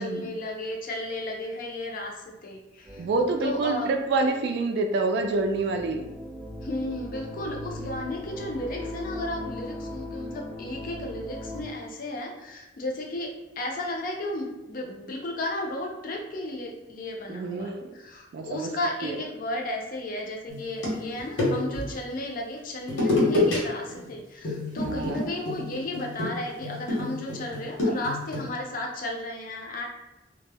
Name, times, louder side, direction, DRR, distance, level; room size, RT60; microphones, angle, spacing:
voice 1, 0.0-3.1 3.4-3.9 6.6-29.9, left 1 dB, 50° left, 1 dB, 0.4 m, -34 dB
sound 1, 2.8-11.6, left 1 dB, 15° right, 0.7 m, -39 dB
voice 2, 3.0-6.1 17.3-17.9 18.3-18.7 19.0-19.2 24.8-25.3, right 3 dB, 65° right, 5 dB, 0.3 m, -27 dB
sound 2, 20.5-21.9 22.9-23.6 23.9-24.1 24.4-28.5, left 2 dB, 80° left, 0.9 m, -27 dB
2.1 x 2.0 x 3.3 m, 1.0 s
head